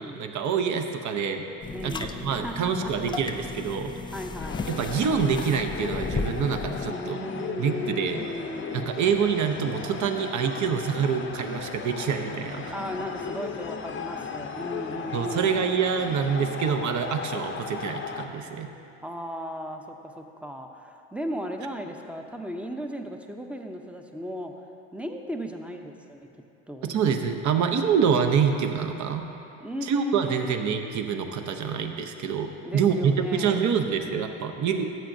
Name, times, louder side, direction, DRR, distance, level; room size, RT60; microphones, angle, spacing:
voice 1, 0.2-1.4 1.8-3.9 4.7-7.2 7.6-8.2 8.7-12.7 15.1-18.7 26.9-29.3 29.8-32.5 32.7-35.0, right 6 dB, 50° right, 5 dB, 0.9 m, -26 dB
sound 1, 1.6-6.9, left 4 dB, 15° left, 0.3 m, -35 dB
voice 2, 1.7-2.9 4.1-4.7 6.9-8.9 12.7-15.5 19.0-24.5 24.9-26.3 26.7-26.9 29.6-30.5 32.6-33.7, equal, 5° right, 4 dB, 0.7 m, -36 dB
sound 2, 4.4-18.3, left 5 dB, 30° left, 0.7 m, -36 dB
14.0 x 7.6 x 2.7 m, 2.7 s
hypercardioid pair, 70°, 37 cm